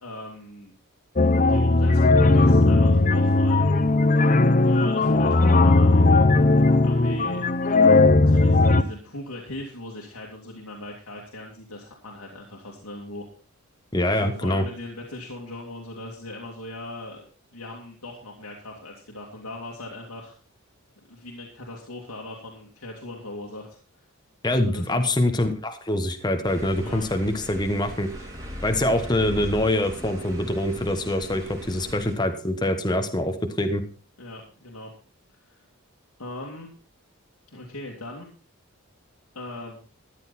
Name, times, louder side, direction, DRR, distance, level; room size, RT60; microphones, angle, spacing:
voice 1, 0.0-0.7 1.5-3.7 4.6-6.2 6.8-7.4 8.2-13.3 14.2-17.2 17.5-20.3 21.1-23.8 24.7-25.0 26.8-27.1 34.2-34.9 35.4-35.6 36.2-36.7 37.5-38.3 39.3-39.8, left 2 dB, 90° left, -2 dB, 2.5 m, -39 dB
sound 1, 1.2-8.8, left 2 dB, 35° left, 0.7 m, -18 dB
voice 2, 13.9-14.7 24.4-28.1 28.6-33.8, left 1 dB, 20° left, 7 dB, 1.2 m, -24 dB
sound 2, 26.5-32.1, equal, 15° right, 3.1 m, -39 dB
14.0 x 10.5 x 4.2 m, 0.38 s
head